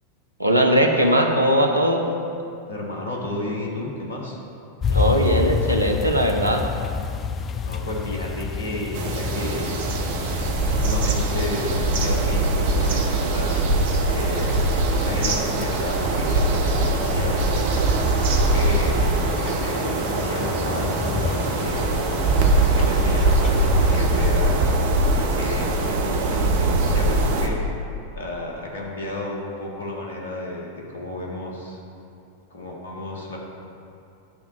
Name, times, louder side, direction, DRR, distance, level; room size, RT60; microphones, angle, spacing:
voice 1, 0.4-2.1 4.9-6.6, right 1 dB, 85° right, 3 dB, 0.7 m, -19 dB
voice 2, 2.7-4.4 7.6-9.8 10.6-13.7 14.1-14.6 14.9-17.7 18.2-19.1 19.4-21.9 22.6-24.7 25.1-27.6 28.1-31.8 32.5-33.4, left 2 dB, 65° left, -1 dB, 1.3 m, -32 dB
sound 1, 4.8-24.3, left 5 dB, 25° left, 0.3 m, -30 dB
sound 2, 8.9-27.5, right 2 dB, 55° right, 0.8 m, -22 dB
8.6 x 3.5 x 6.4 m, 2.6 s
figure-of-eight pair, 90°, 0 cm